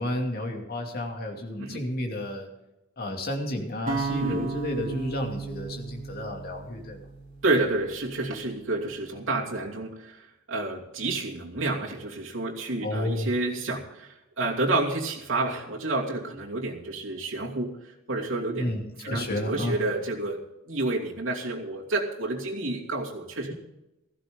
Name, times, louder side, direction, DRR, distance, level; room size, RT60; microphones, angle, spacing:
voice 1, 0.0-2.5 3.0-7.0 12.8-13.3 18.6-19.7, left 1 dB, 50° left, 2 dB, 2.7 m, -31 dB
sound 1, 3.9-8.0, right 3 dB, 45° right, 3.5 m, -34 dB
voice 2, 7.4-10.2 10.5-14.1 14.4-17.7 18.1-20.4 20.7-23.5, right 2 dB, 75° right, -3 dB, 2.8 m, -29 dB
16.5 x 14.5 x 3.9 m, 0.95 s
head